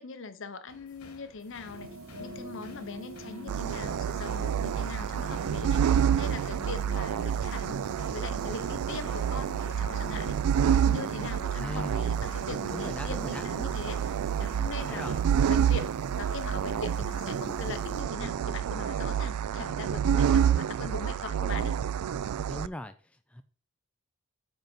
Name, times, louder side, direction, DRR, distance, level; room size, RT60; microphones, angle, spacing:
voice 1, 0.0-7.8 8.1-10.4 10.8-21.8, left 4 dB, 55° left, 0.7 m, -41 dB
sound 1, 0.7-15.1, left 3 dB, 85° left, 1.3 m, -54 dB
sound 2, 1.6-18.0, right 1 dB, 65° right, 1.9 m, -44 dB
sound 3, 3.5-22.7, right 8 dB, 90° right, 0.3 m, -28 dB
voice 2, 11.5-12.0 12.7-13.4 14.8-15.2 22.5-23.4, left 1 dB, 5° left, 0.3 m, -39 dB
8.8 x 3.9 x 5.3 m
head